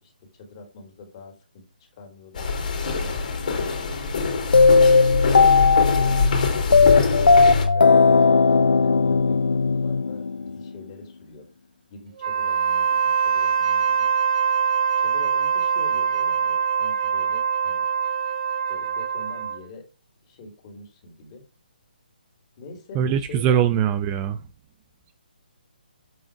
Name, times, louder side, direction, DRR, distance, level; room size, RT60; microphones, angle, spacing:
voice 1, 0.0-1.7 2.0-4.1 5.0-11.5 11.9-14.1 15.0-17.9 18.7-19.9 20.2-21.4 22.6-23.7, left 3 dB, 35° left, 3.1 m, -44 dB
sound 1, 2.3-7.7, left 4 dB, 55° left, 2.8 m, -24 dB
sound 2, 4.5-10.7, left 4 dB, 85° left, 0.5 m, -17 dB
Wind instrument woodwind instrument, 12.2-19.6, right 7 dB, 50° right, 1.9 m, -23 dB
voice 2, 22.9-24.4, right 9 dB, 20° right, 0.5 m, -22 dB
7.8 x 5.6 x 4.7 m
figure-of-eight pair, 145°, 5 cm